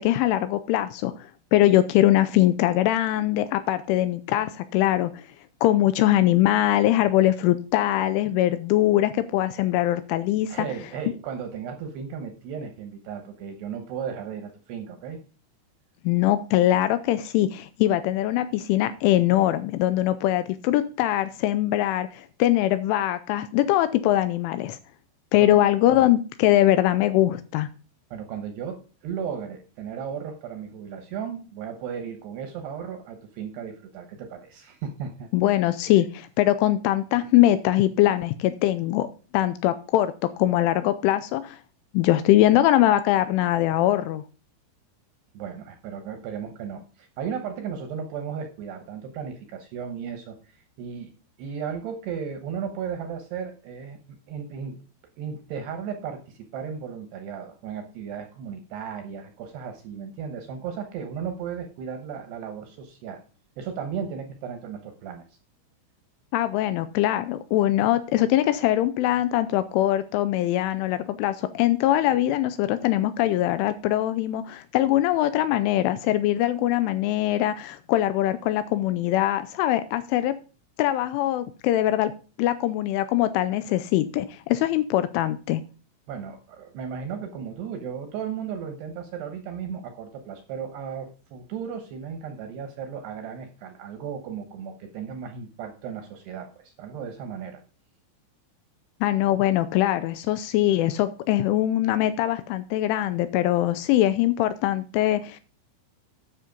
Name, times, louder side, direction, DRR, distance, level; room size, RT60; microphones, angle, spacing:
voice 1, 0.0-5.2 5.6-10.7 16.0-24.8 25.3-27.7 35.3-39.1 39.3-41.6 41.9-44.2 66.3-80.3 80.8-82.1 82.4-85.6 99.0-105.4, left 14 dB, 80° left, 12 dB, 2.9 m, -22 dB
voice 2, 10.5-15.2 25.4-25.6 28.1-28.8 29.0-35.6 45.3-51.1 51.4-54.0 54.3-54.8 55.2-63.2 63.6-65.2 86.1-97.6, right 7 dB, 75° right, 6 dB, 2.6 m, -35 dB
10.0 x 6.6 x 5.2 m, 0.36 s
omnidirectional pair, 5.9 m